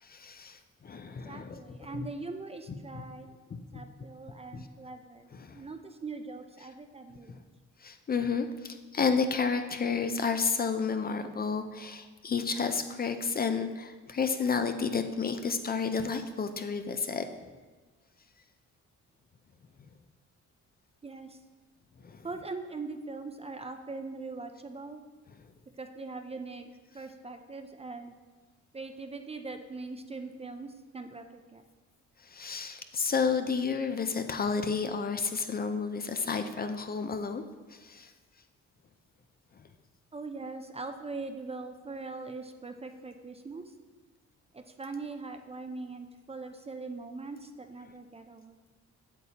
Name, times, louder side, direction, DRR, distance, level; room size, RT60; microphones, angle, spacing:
voice 1, 0.0-1.6 2.9-3.1 3.5-3.8 4.5-4.6 5.4-5.6 7.3-7.4 7.8-17.2 22.0-22.3 32.2-37.4 37.7-38.1, left 5 dB, 30° left, 8 dB, 0.5 m, -31 dB
voice 2, 1.2-3.3 3.7-5.3 5.5-7.4 21.0-21.4 22.2-25.0 25.8-28.2 28.7-31.6 40.1-43.7 44.5-48.6, right 3 dB, 20° right, 7 dB, 0.5 m, -41 dB
8.1 x 6.9 x 2.9 m, 1.3 s
cardioid pair, 90°, 30 cm